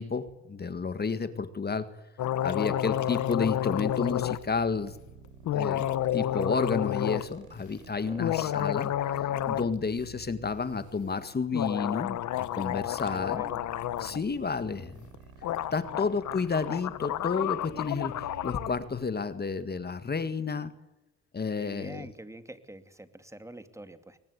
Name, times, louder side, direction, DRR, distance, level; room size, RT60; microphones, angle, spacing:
voice 1, 0.0-1.9 2.4-5.0 5.5-5.9 6.1-13.4 14.0-15.1 15.7-20.7 21.3-22.1, left 5 dB, 30° left, 12 dB, 1.8 m, -31 dB
sound 1, 2.2-4.4 5.5-7.3 8.1-9.7 10.0-10.1 11.5-14.2 15.1-15.2 15.4-18.7, left 12 dB, 75° left, 1.2 m, -30 dB
sound 2, 4.0-20.3, right 6 dB, 85° right, 4.9 m, -52 dB
voice 2, 8.0-8.6 13.1-13.6 16.0-16.2 21.6-24.2, right 1 dB, 10° right, 10 dB, 2.5 m, -46 dB
23.5 x 19.5 x 8.3 m, 0.94 s
cardioid pair, 90°, 30 cm